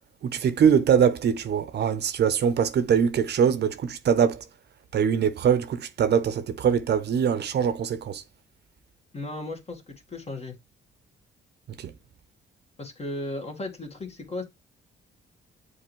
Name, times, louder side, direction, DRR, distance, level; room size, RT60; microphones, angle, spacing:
voice 1, 0.2-4.4 4.9-8.2 11.8-11.9, right 7 dB, 60° right, 0.7 m, -23 dB
voice 2, 9.1-10.6 12.8-14.4, left 2 dB, 30° left, 1.7 m, -35 dB
7.4 x 4.1 x 3.1 m
cardioid pair, 90°, 20 cm